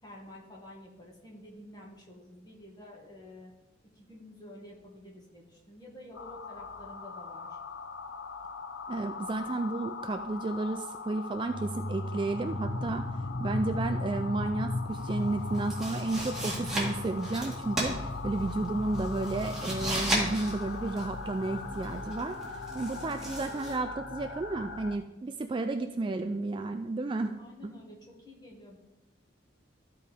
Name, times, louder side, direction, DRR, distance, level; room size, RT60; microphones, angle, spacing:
voice 1, 0.0-3.5 3.9-7.6 27.4-28.8, left 1 dB, 20° left, -2 dB, 1.8 m, -50 dB
sound 1, 6.1-25.0, left 3 dB, 90° left, 0.7 m, -37 dB
voice 2, 8.9-13.1 13.4-27.4 27.6-27.7, right 2 dB, 25° right, 7 dB, 0.3 m, -32 dB
sound 2, 14.9-23.8, right 1 dB, 5° right, 2.0 m, -36 dB
sound 3, 21.4-25.1, right 1 dB, 55° left, 1.9 m, -52 dB
13.5 x 4.6 x 3.5 m, 0.97 s
head